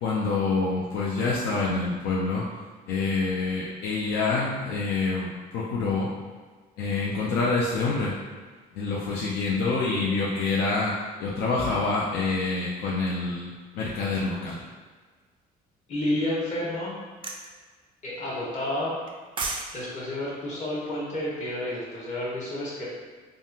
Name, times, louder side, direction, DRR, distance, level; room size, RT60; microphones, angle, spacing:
voice 1, 0.0-2.4 2.9-6.1 6.8-8.1 8.7-14.6, left 3 dB, 80° left, -5 dB, 0.5 m, -27 dB
voice 2, 15.9-17.0 18.0-18.9 19.7-22.9, left 1 dB, 45° left, -7 dB, 1.3 m, -30 dB
sound 1, 17.2-17.5 19.1-19.7 20.0-20.2, right 3 dB, 30° right, 0.4 m, -31 dB
3.5 x 2.2 x 2.7 m, 1.4 s
cardioid pair, 110°, 17 cm